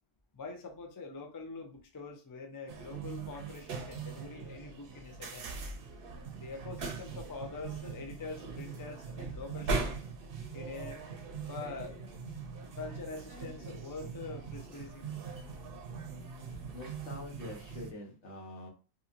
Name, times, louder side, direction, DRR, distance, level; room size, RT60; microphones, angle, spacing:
voice 1, 0.3-5.6 6.3-10.0 10.5-11.0 11.5-12.0 12.8-15.2, left 4 dB, 35° left, 3 dB, 0.3 m, -44 dB
sound 1, 2.7-17.9, right 4 dB, 60° right, 0.7 m, -41 dB
voice 2, 16.7-18.7, left 2 dB, 80° left, -1 dB, 1.3 m, -45 dB
2.8 x 2.6 x 2.4 m, 0.32 s
omnidirectional pair, 1.2 m